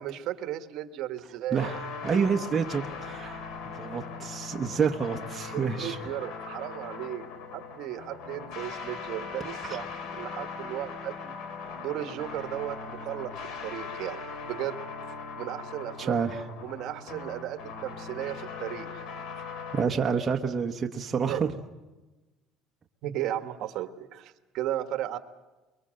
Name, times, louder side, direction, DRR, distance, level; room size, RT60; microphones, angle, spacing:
voice 1, 0.0-1.8 5.5-7.2 7.5-11.3 11.8-13.3 13.6-14.8 15.4-16.2 16.6-19.0 19.3-19.4 21.3-21.4 23.0-25.2, right 12 dB, 55° right, 8 dB, 1.4 m, -35 dB
voice 2, 1.5-3.4 3.8-6.0 9.7-9.8 16.0-16.4 19.7-21.5, right 6 dB, 20° right, 2 dB, 1.0 m, -28 dB
sound 1, 1.6-19.8, left 5 dB, 70° left, 3.4 m, -40 dB
24.5 x 22.5 x 7.6 m, 1.1 s
cardioid pair, 170°, 0 cm